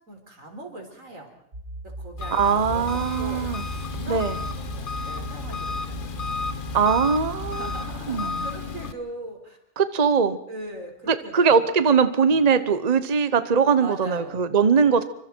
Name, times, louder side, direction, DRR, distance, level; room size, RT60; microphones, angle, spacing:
voice 1, 0.1-1.3 1.8-3.4 3.8-6.1 7.5-9.6 10.5-11.8 13.8-14.5, right 1 dB, 85° right, 3 dB, 4.4 m, -40 dB
sound 1, 1.5-8.0, right 1 dB, 55° right, 3.2 m, -38 dB
Engine, 2.2-8.9, left 4 dB, 45° left, 1.1 m, -32 dB
voice 2, 2.3-3.6 4.1-4.4 6.7-7.7 8.1-8.5 9.8-10.4 11.1-15.0, right 6 dB, 35° right, 12 dB, 1.0 m, -21 dB
28.0 x 24.5 x 4.6 m, 0.72 s
omnidirectional pair, 1.3 m